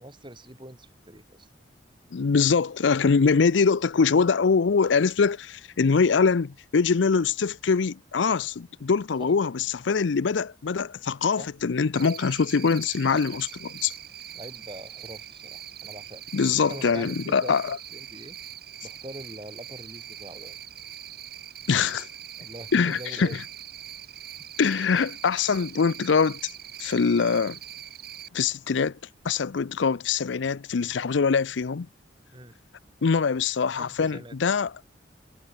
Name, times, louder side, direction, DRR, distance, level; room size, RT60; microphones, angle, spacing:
voice 1, 0.0-1.5 9.2-9.3 11.4-11.5 14.3-16.2 16.6-18.4 18.8-20.6 22.4-23.4 32.3-32.6 33.7-34.6, right 1 dB, 25° right, 5.7 m, -43 dB
voice 2, 2.1-13.9 16.3-17.8 21.7-22.1 22.7-23.4 24.6-26.4 26.8-27.6 28.3-29.0 29.2-31.9 33.0-34.8, left 5 dB, 80° left, 0.5 m, -23 dB
Cricket, 11.9-28.3, right 11 dB, 55° right, 4.2 m, -42 dB
head